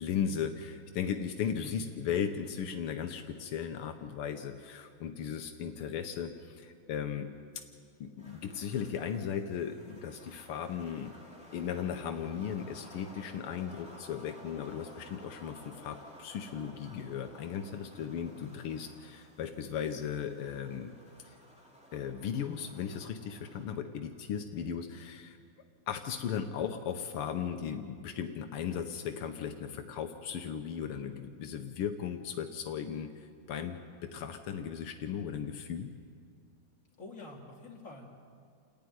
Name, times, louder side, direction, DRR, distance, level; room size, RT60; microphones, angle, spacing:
voice 1, 0.0-7.3 8.0-11.1 11.5-20.9 21.2-21.4 21.9-25.4 25.9-35.9, left 8 dB, 85° left, 6 dB, 1.8 m, -36 dB
sound 1, 8.2-23.6, equal, 5° right, 2.8 m, -55 dB
voice 2, 18.3-18.7 37.0-38.0, left 2 dB, 35° left, -2 dB, 3.1 m, -47 dB
29.5 x 10.5 x 9.5 m, 2.2 s
omnidirectional pair, 2.4 m